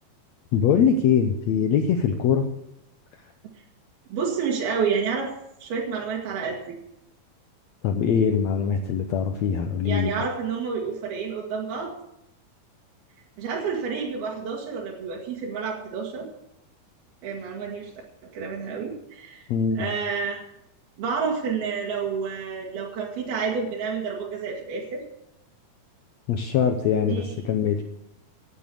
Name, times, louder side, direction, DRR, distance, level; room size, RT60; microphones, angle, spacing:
voice 1, 0.5-2.4 7.8-10.1 19.5-19.8 26.3-27.8, left 7 dB, 90° left, 6 dB, 1.5 m, -22 dB
voice 2, 4.1-5.3 5.6-6.8 9.8-11.9 13.4-16.3 17.2-17.9 18.2-19.5 19.8-20.4 21.0-25.0 27.1-27.3, right 5 dB, 85° right, -3 dB, 3.7 m, -29 dB
17.0 x 7.7 x 6.7 m, 0.82 s
omnidirectional pair, 4.3 m